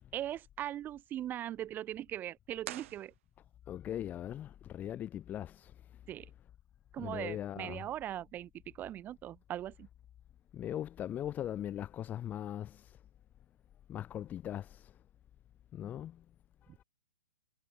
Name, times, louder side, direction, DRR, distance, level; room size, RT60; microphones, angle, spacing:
voice 1, 0.1-3.1 6.1-6.3 6.9-8.5 8.8-9.9, right 12 dB, 20° right, 3.7 m, -40 dB
sound 1, 2.6-3.8, right 14 dB, 50° right, 2.7 m, -46 dB
voice 2, 3.7-5.7 7.0-7.8 10.5-12.9 13.9-14.9 15.7-16.2, left 11 dB, 20° left, 1.8 m, -40 dB
hypercardioid pair, 145°, 9 cm